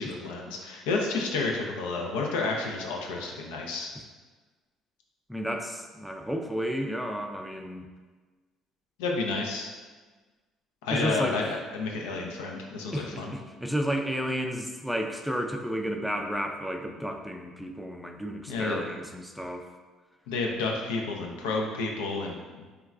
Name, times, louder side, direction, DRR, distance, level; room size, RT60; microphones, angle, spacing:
voice 1, 0.0-3.9 9.0-9.7 10.8-13.3 18.5-18.8 20.3-22.6, left 3 dB, 80° left, 0 dB, 0.4 m, -30 dB
voice 2, 5.3-7.9 10.9-11.6 12.9-19.7, equal, ahead, 3 dB, 0.4 m, -32 dB
3.6 x 2.2 x 2.3 m, 1.4 s
hypercardioid pair, 60°, 0 cm